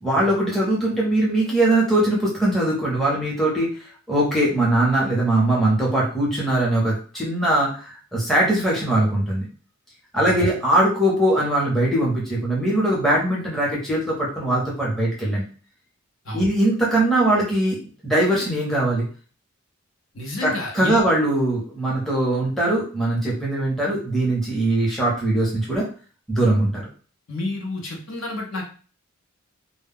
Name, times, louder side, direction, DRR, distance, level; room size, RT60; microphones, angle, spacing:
voice 1, 0.0-3.7 4.1-9.5 10.1-15.4 16.3-17.8 18.0-19.0 20.4-25.9 26.3-26.9, right 1 dB, ahead, -5 dB, 0.7 m, -21 dB
voice 2, 20.1-21.0 27.3-28.6, left 2 dB, 60° left, 0 dB, 0.7 m, -30 dB
2.2 x 2.0 x 3.5 m, 0.39 s
head